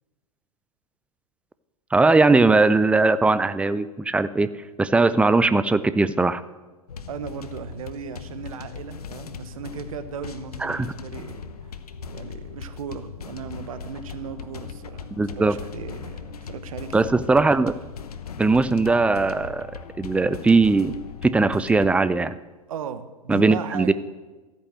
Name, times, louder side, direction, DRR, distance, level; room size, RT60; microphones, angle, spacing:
voice 1, 1.9-4.5 4.8-6.4 10.6-10.9 15.1-15.6 16.9-17.8 18.4-19.7 20.0-21.0 21.2-22.4 23.3-23.9, right 3 dB, 5° right, 15 dB, 0.5 m, -19 dB
sound 1, 6.9-21.9, left 6 dB, 75° left, 1.0 m, -38 dB
voice 2, 7.1-11.8 12.1-16.9 22.7-23.9, right 8 dB, 65° right, 12 dB, 1.2 m, -37 dB
13.5 x 9.1 x 7.5 m, 1.2 s
figure-of-eight pair, 100°, 20 cm